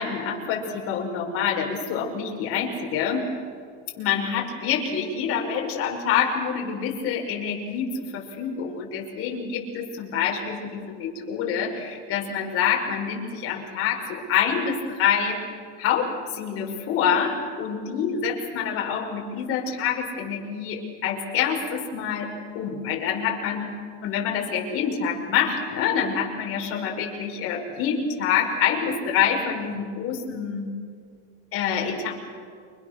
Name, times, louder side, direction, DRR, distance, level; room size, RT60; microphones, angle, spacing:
voice 1, 0.0-3.2 4.0-15.4 15.8-22.3 22.5-23.7 24.0-30.7 31.5-32.3, left 7 dB, 40° left, 1 dB, 5.6 m, -26 dB
29.0 x 26.0 x 6.7 m, 2.1 s
cardioid pair, 160°, 33 cm